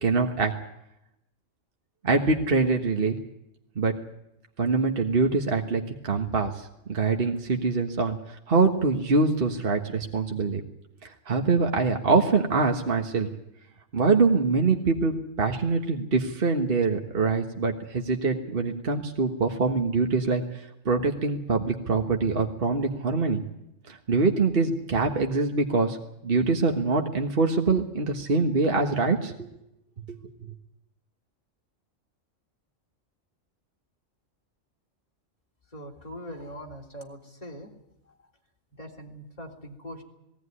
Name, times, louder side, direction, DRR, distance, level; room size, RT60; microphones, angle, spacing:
voice 1, 0.0-0.5 2.0-3.2 3.8-3.9 4.6-6.5 6.9-8.2 8.5-10.6 11.3-13.3 13.9-20.4 20.8-23.4 23.9-26.0 26.2-29.5 30.1-30.2, right 4 dB, 45° right, 3 dB, 1.7 m, -24 dB
voice 2, 35.7-37.7 38.8-40.0, equal, 30° left, 0 dB, 3.5 m, -41 dB
20.0 x 17.0 x 9.8 m, 0.84 s
omnidirectional pair, 1.3 m